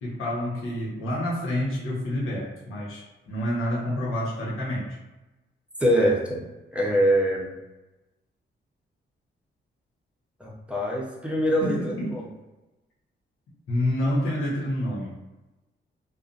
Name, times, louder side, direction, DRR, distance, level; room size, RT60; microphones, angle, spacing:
voice 1, 0.0-4.9 11.6-12.2 13.7-15.1, left 1 dB, 85° left, -5 dB, 1.0 m, -28 dB
voice 2, 5.8-6.4 6.7-7.5 10.4-12.3, equal, 5° right, -3 dB, 0.7 m, -24 dB
2.6 x 2.3 x 2.5 m, 1.1 s
cardioid pair, 75°, 21 cm